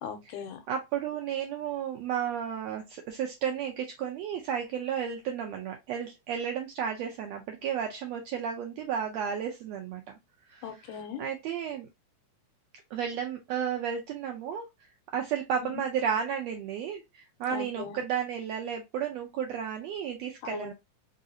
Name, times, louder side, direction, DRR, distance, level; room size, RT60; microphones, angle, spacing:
voice 1, 0.0-0.6 10.6-11.2 15.6-15.7 17.5-18.0 20.4-20.7, left 7 dB, 85° left, 2.0 m, -39 dB
voice 2, 0.7-10.2 10.5-10.6 11.2-11.9 12.9-14.7 15.1-20.7, right 8 dB, 80° right, 1.5 m, -33 dB
4.8 x 2.6 x 2.7 m
omnidirectional pair, 3.6 m